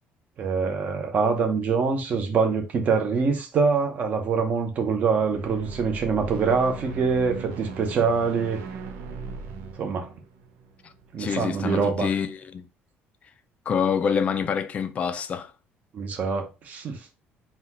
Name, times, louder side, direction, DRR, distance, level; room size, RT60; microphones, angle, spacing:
voice 1, 0.4-8.6 9.8-10.1 11.1-12.1 15.9-17.0, right 5 dB, 35° right, 0.8 m, -24 dB
sound 1, 5.1-11.4, right 4 dB, 90° right, 0.7 m, -38 dB
voice 2, 11.2-12.6 13.7-15.5, left 7 dB, 30° left, 0.4 m, -26 dB
4.1 x 2.4 x 4.1 m
cardioid pair, 165°, 4 cm